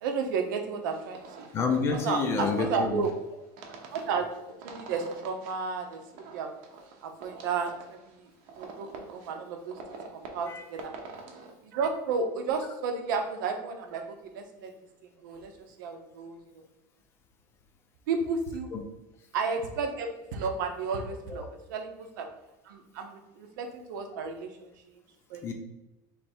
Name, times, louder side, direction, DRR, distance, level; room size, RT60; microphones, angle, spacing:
voice 1, 0.0-1.5 2.0-3.1 3.9-6.5 7.0-7.8 8.1-8.3 8.6-10.9 11.6-14.7 15.2-15.5 15.8-16.6 18.1-18.7 19.3-21.4 21.7-22.3 22.6-25.0 25.3-25.4, right 5 dB, 85° right, 5 dB, 0.8 m, -33 dB
sound 1, 0.8-11.5, right 4 dB, 50° right, 0.8 m, -47 dB
voice 2, 1.5-3.1 10.5-10.7 18.7-18.8 21.3-21.5 25.4-25.5, left 4 dB, 25° left, 4 dB, 0.5 m, -29 dB
3.5 x 3.3 x 4.3 m, 0.96 s
supercardioid pair, 170°, 10 cm